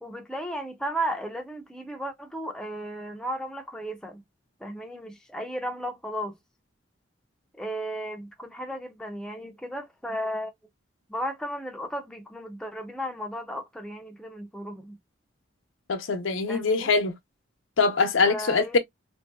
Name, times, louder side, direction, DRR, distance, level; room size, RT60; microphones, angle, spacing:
voice 1, 0.0-4.2 4.6-6.4 7.5-10.5 11.1-15.0 16.5-16.9 18.2-18.8, equal, 5° left, 0.4 m, -34 dB
voice 2, 15.9-17.1 17.8-18.8, left 4 dB, 85° left, 0.7 m, -23 dB
3.0 x 2.6 x 2.3 m
head